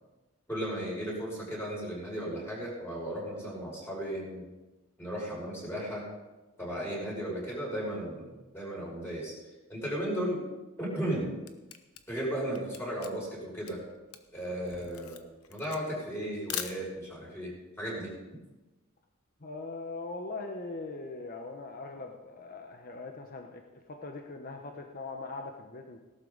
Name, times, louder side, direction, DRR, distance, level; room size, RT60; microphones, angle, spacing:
voice 1, 0.5-4.4 5.0-6.0 6.6-9.3 9.7-10.4 10.8-11.3 12.1-13.8 14.3-15.2 15.5-18.1, right 1 dB, 10° left, -5 dB, 6.1 m, -35 dB
Camera, 11.0-17.3, left 10 dB, 90° left, 1.0 m, -42 dB
voice 2, 19.4-26.0, left 3 dB, 45° left, 3 dB, 1.0 m, -41 dB
18.0 x 12.0 x 4.0 m, 1.1 s
head